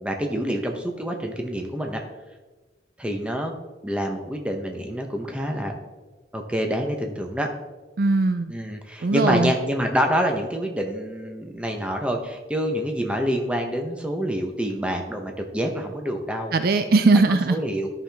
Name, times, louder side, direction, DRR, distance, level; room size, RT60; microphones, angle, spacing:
voice 1, 0.0-2.0 3.0-3.5 3.8-5.9 6.3-7.5 8.5-16.5 17.3-17.9, equal, 5° right, 2 dB, 0.8 m, -27 dB
voice 2, 8.0-8.5 9.0-9.5 16.5-17.6, right 3 dB, 50° right, 9 dB, 0.4 m, -19 dB
13.0 x 5.8 x 3.5 m, 1.3 s
head